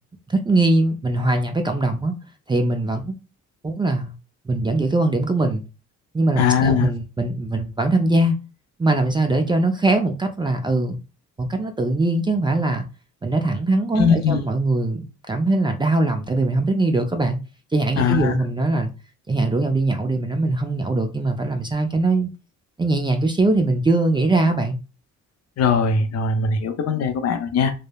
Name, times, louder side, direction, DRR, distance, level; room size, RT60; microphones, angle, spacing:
voice 1, 0.3-2.1 2.5-3.1 3.6-4.1 4.5-5.6 6.1-8.4 8.8-11.0 11.4-12.8 13.2-17.4 17.7-18.9 19.3-22.3 22.8-24.8, right 2 dB, 15° right, 0.4 m, -21 dB
voice 2, 6.4-6.9 14.0-14.4 18.0-18.4 25.6-27.7, left 5 dB, 55° left, 0.6 m, -20 dB
3.1 x 2.0 x 2.2 m
cardioid pair, 90°, 30 cm